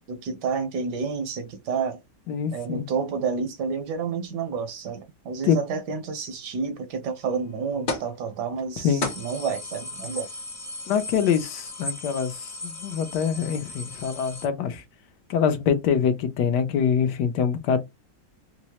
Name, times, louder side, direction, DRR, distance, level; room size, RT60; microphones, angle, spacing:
voice 1, 0.1-2.0 2.5-10.3, right 5 dB, 75° right, 1.3 m, -30 dB
voice 2, 2.3-2.8 5.4-5.6 8.8-9.1 10.9-14.8 15.3-17.8, left 7 dB, 75° left, 1.2 m, -24 dB
sound 1, 7.9-8.2 8.6-8.7 9.0-14.5, left 2 dB, 40° left, 0.8 m, -35 dB
4.5 x 2.1 x 2.8 m
omnidirectional pair, 1.9 m